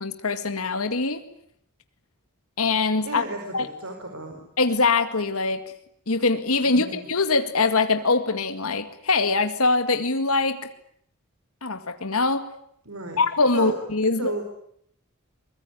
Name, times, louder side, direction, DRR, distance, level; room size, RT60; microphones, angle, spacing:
voice 1, 0.0-1.2 2.6-3.2 3.5-3.7 4.6-5.6 6.1-10.6 11.6-12.5 13.2-14.4, left 3 dB, 75° left, 9 dB, 2.1 m, -23 dB
voice 2, 3.0-4.4 6.6-7.1 12.8-13.2 13.5-13.8 14.0-14.4, right 2 dB, 75° right, 4 dB, 4.8 m, -33 dB
24.0 x 22.5 x 9.7 m, 0.69 s
head